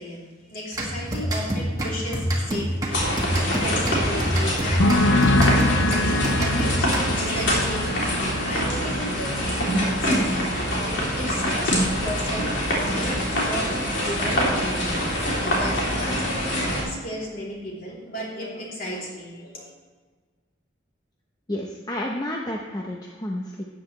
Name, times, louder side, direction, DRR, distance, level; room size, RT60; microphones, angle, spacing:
voice 1, 0.0-10.5 10.8-15.1 15.5-19.7, equal, 45° left, -4 dB, 3.3 m, -35 dB
sound 1, 0.7-7.4, equal, 20° right, 1.6 m, -27 dB
sound 2, 2.9-16.8, equal, 70° left, 3.2 m, -25 dB
sound 3, 4.8-12.3 12.5-13.1, left 1 dB, 85° left, 0.7 m, -26 dB
voice 2, 21.5-23.6, left 1 dB, 20° left, -1 dB, 0.8 m, -30 dB
13.5 x 9.0 x 3.3 m, 1.4 s
head